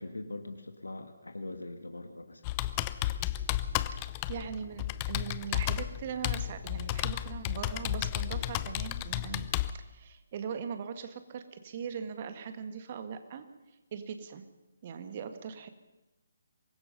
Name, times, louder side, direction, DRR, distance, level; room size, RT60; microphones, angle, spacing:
voice 1, 0.0-2.4, left 2 dB, 70° left, 7 dB, 1.9 m, -42 dB
Computer keyboard, 2.4-9.7, left 14 dB, 20° left, 0.6 m, -33 dB
voice 2, 4.3-9.5 9.7-13.5 13.9-14.5 14.8-15.7, right 7 dB, 35° right, 8 dB, 1.9 m, -40 dB
24.5 x 21.5 x 5.6 m, 1.1 s
figure-of-eight pair, 140°, 0 cm